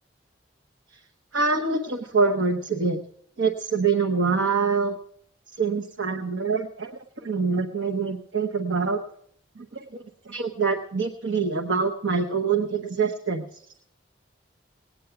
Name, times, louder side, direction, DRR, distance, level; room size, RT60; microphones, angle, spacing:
voice 1, 1.3-3.0 3.4-5.0 5.6-9.0 9.6-13.6, right 4 dB, 75° right, 4 dB, 1.0 m, -25 dB
18.5 x 9.2 x 5.8 m, 0.67 s
head